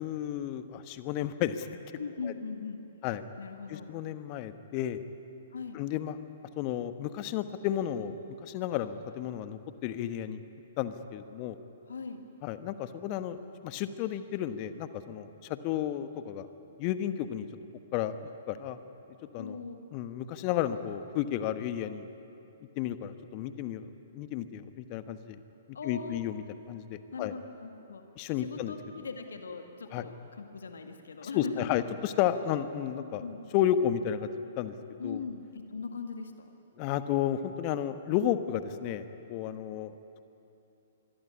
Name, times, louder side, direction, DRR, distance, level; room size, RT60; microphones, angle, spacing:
voice 1, 0.0-1.7 2.2-2.3 3.0-3.2 3.7-5.0 5.7-6.2 6.6-8.1 8.4-10.4 10.8-11.6 12.4-16.5 16.8-17.5 17.9-18.1 18.5-18.8 19.3-19.6 19.9-22.0 22.8-25.4 25.8-26.4 26.7-27.3 28.2-28.7 29.9-30.0 31.3-33.2 33.5-34.7 35.0-35.2 36.8-40.0, left 11 dB, 35° left, 10 dB, 1.2 m, -32 dB
voice 2, 2.0-2.8 3.4-3.9 5.5-5.8 11.9-12.2 19.4-19.8 25.7-26.2 27.1-28.1 28.4-31.8 32.9-33.4 35.0-36.5, left 5 dB, 65° left, 5 dB, 1.9 m, -40 dB
26.0 x 22.0 x 9.7 m, 2.8 s
figure-of-eight pair, 115°, 0 cm